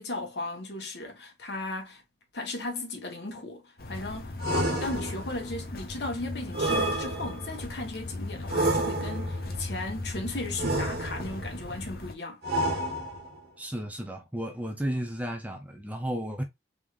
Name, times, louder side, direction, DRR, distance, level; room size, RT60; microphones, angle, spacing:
voice 1, 0.0-2.0 2.3-4.3 4.6-12.4, left 2 dB, 70° left, 1.4 m, -36 dB
sound 1, 3.8-12.1, left 2 dB, 55° left, 0.8 m, -38 dB
sound 2, 4.4-5.5 6.5-7.6 8.5-9.4 10.6-11.5 12.4-13.4, right 1 dB, 60° right, 1.6 m, -29 dB
voice 2, 13.6-16.4, equal, 10° right, 0.6 m, -33 dB
3.7 x 3.3 x 2.5 m
head